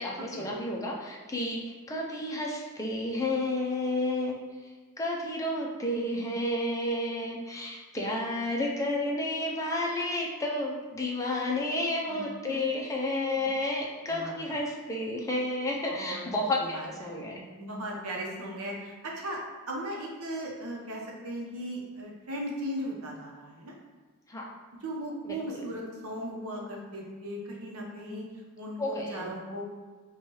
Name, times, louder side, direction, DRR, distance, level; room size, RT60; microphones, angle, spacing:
voice 1, 0.0-4.4 5.0-17.4 24.3-24.5 25.2-25.6 28.8-29.3, left 1 dB, 15° left, -2 dB, 0.5 m, -31 dB
voice 2, 12.1-12.6 13.4-13.5 14.1-14.6 15.9-16.2 16.6-16.9 17.6-19.4 19.7-23.7 24.8-28.3 28.6-29.6, equal, 70° right, -2 dB, 0.8 m, -37 dB
4.4 x 2.3 x 3.0 m, 1.4 s
head